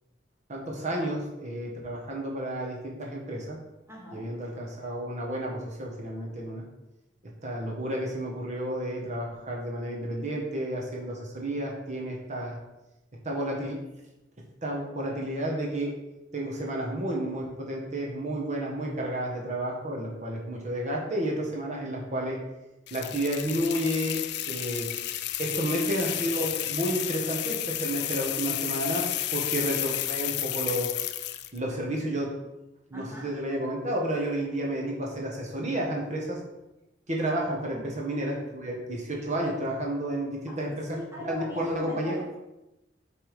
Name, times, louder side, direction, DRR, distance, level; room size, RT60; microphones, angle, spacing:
voice 1, 0.5-3.6 4.1-6.6 7.4-12.6 13.2-13.8 14.6-15.9 16.3-22.4 22.9-24.2 24.5-24.9 25.4-29.0 29.3-30.9 31.5-32.3 32.9-36.4 37.1-42.2, right 1 dB, 40° right, -2 dB, 1.4 m, -31 dB
voice 2, 3.9-4.2 25.5-25.7 32.9-33.3 37.6-37.9 40.9-42.4, equal, 15° right, -3 dB, 1.2 m, -40 dB
sound 1, 22.9-31.6, left 13 dB, 65° left, 0.4 m, -32 dB
7.1 x 3.5 x 4.9 m, 0.95 s
head